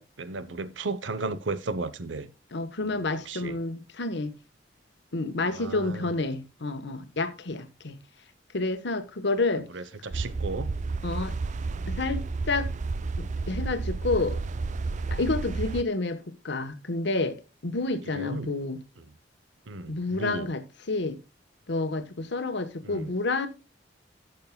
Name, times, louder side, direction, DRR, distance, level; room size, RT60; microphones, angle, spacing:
voice 1, 0.0-2.3 2.8-3.6 5.5-6.1 9.7-10.7 11.7-12.0 18.1-18.5 19.7-20.5 22.8-23.1, right 3 dB, 80° right, 0.8 m, -35 dB
voice 2, 2.5-4.3 5.1-7.9 8.5-9.7 11.0-11.3 11.9-12.7 13.2-14.4 15.1-18.8 19.9-20.6 20.9-21.2 21.7-23.5, left 3 dB, 65° left, 1.2 m, -29 dB
sound 1, 10.1-15.8, right 3 dB, 40° right, 0.4 m, -31 dB
16.5 x 6.5 x 2.2 m
head